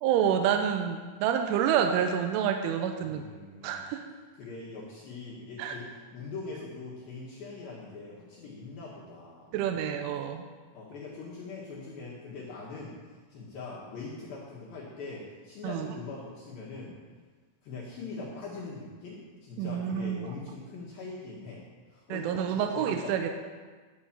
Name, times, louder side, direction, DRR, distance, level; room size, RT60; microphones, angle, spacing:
voice 1, 0.0-3.2 3.6-4.1 5.6-5.8 9.5-10.4 15.6-15.9 19.6-20.3 22.1-23.3, right 8 dB, 80° right, 5 dB, 3.0 m, -28 dB
voice 2, 3.0-3.8 4.4-9.5 9.9-10.1 10.7-13.0 13.3-17.0 17.6-21.6 21.9-23.3, left 3 dB, 65° left, -7 dB, 2.6 m, -42 dB
11.5 x 5.6 x 7.3 m, 1.4 s
omnidirectional pair, 5.8 m